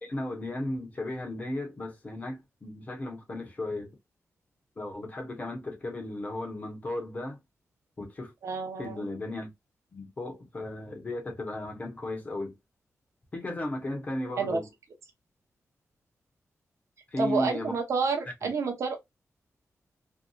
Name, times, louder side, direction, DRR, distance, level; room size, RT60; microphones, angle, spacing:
voice 1, 0.0-3.9 4.8-7.4 8.0-8.3 8.8-9.5 9.9-12.5 13.3-14.7 17.1-17.7 18.4-18.5, left 1 dB, 30° left, 0.8 m, -35 dB
voice 2, 8.4-9.1 14.4-14.6 17.2-19.0, right 4 dB, 65° right, 0.8 m, -29 dB
2.7 x 2.3 x 2.3 m
wide cardioid pair, 150°, 5 cm